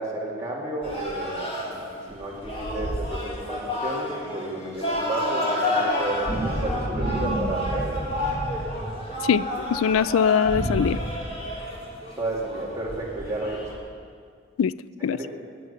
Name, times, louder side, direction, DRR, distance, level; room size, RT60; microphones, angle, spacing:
voice 1, 0.0-1.5 1.9-8.1 12.1-13.7 15.1-15.3, right 1 dB, 15° right, -5 dB, 2.3 m, -32 dB
sound 1, 0.8-13.7, equal, 30° left, 2.6 m, -29 dB
voice 2, 9.2-11.0 14.6-14.7 15.0-15.2, left 7 dB, 85° left, 18 dB, 0.3 m, -22 dB
12.5 x 7.7 x 9.6 m, 2.1 s
head